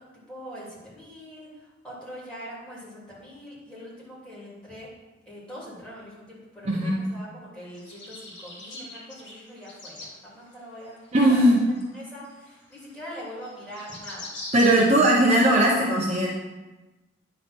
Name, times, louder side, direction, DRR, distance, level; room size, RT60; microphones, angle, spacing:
voice 1, 0.0-4.9 5.2-11.5 11.9-14.3, equal, 5° left, -8 dB, 2.9 m, -43 dB
sound 1, 7.7-10.1 10.9-15.6, left 2 dB, 60° left, 1.8 m, -42 dB
voice 2, 11.1-11.6 14.5-16.3, right 1 dB, 35° right, -4 dB, 1.0 m, -19 dB
9.8 x 3.8 x 6.1 m, 1.1 s
head